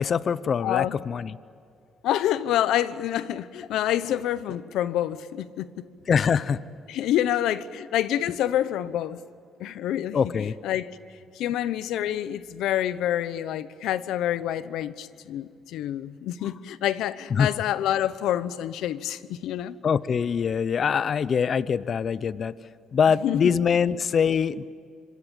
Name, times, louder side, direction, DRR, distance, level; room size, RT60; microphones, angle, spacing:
voice 1, 0.0-1.3 6.1-6.6 10.1-10.5 17.3-17.5 19.8-22.5 22.9-24.7, left 7 dB, 50° left, 0.8 m, -23 dB
voice 2, 0.6-1.0 2.0-5.8 6.9-9.2 9.6-10.2 10.6-11.0 11.3-19.7 23.2-23.5, left 11 dB, 85° left, 1.0 m, -27 dB
26.0 x 25.0 x 9.1 m
cardioid pair, 90°, 0 cm